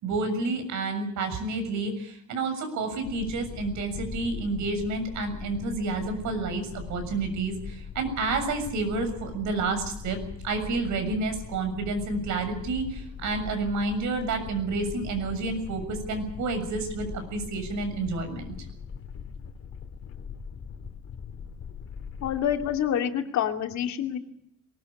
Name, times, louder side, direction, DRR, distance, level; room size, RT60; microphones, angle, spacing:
voice 1, 0.0-10.2 10.4-18.5, right 3 dB, 70° right, 8 dB, 7.0 m, -30 dB
sound 1, 3.0-22.8, left 6 dB, 50° left, 3.3 m, -41 dB
voice 2, 22.2-24.2, left 9 dB, 65° left, 4 dB, 2.7 m, -27 dB
23.5 x 19.5 x 8.8 m, 0.70 s
cardioid pair, 130°, 30 cm